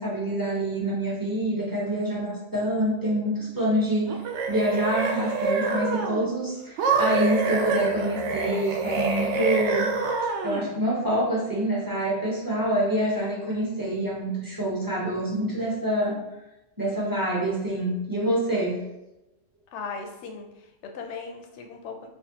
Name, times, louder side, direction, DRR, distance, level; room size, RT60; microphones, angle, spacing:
voice 1, 0.0-4.2 4.5-9.9 10.4-16.2 16.8-18.8, right 1 dB, 20° right, -5 dB, 0.8 m, -26 dB
sound 1, 4.1-6.3 6.8-10.7, right 4 dB, 70° right, 0.8 m, -26 dB
voice 2, 19.7-22.1, left 5 dB, 70° left, 3 dB, 0.8 m, -38 dB
4.4 x 2.3 x 2.7 m, 0.96 s
omnidirectional pair, 1.3 m